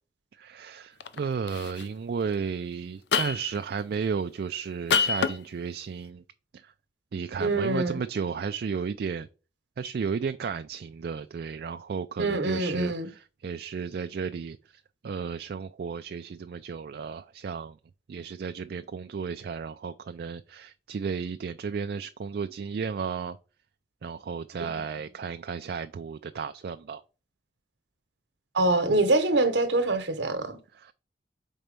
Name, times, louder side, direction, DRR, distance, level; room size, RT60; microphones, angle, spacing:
voice 1, 0.3-6.2 6.5-6.7 7.1-9.3 9.8-17.8 18.1-23.4 24.0-27.0 30.7-30.9, right 6 dB, 60° right, 0.3 m, -33 dB
sound 1, 1.0-1.2 1.5-1.8 3.1-3.6 4.9-5.4, left 6 dB, 75° left, 0.5 m, -25 dB
voice 2, 7.4-8.0 12.2-13.1 24.6-24.7 28.5-30.6, right 2 dB, 85° right, 1.0 m, -25 dB
4.5 x 4.1 x 5.2 m
head